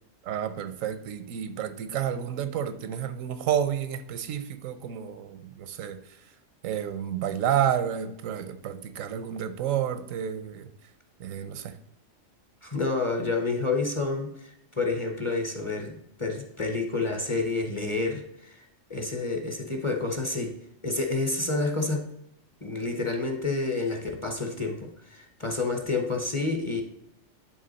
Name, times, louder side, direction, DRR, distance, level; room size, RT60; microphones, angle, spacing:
voice 1, 0.2-6.0 6.6-10.7 11.2-11.8, right 9 dB, 85° right, 1.0 m, -30 dB
voice 2, 12.6-18.6 18.9-20.5 20.8-22.0 22.6-26.8, left 3 dB, 25° left, 0.8 m, -29 dB
10.5 x 3.6 x 4.0 m
omnidirectional pair, 1.3 m